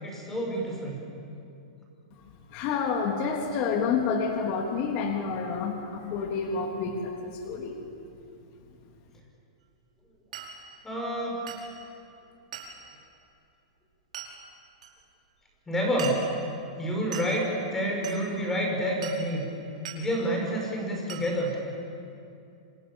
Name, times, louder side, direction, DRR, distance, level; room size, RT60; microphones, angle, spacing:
voice 1, 0.0-1.0 10.8-11.4 15.7-16.3 16.8-19.5 19.9-21.6, equal, 10° left, 0 dB, 6.0 m, -28 dB
voice 2, 2.5-7.7, left 5 dB, 40° left, 2 dB, 3.2 m, -29 dB
Glass, 10.3-10.6 11.5-11.7 12.5-12.8 14.1-14.3 14.8-14.9 16.0-16.3 17.1-17.4 18.0-18.2 19.0-19.3 19.9-20.0 21.1-21.3, right 8 dB, 80° right, 5.1 m, -39 dB
27.5 x 27.0 x 7.2 m, 2.6 s
supercardioid pair, 155°, 4 cm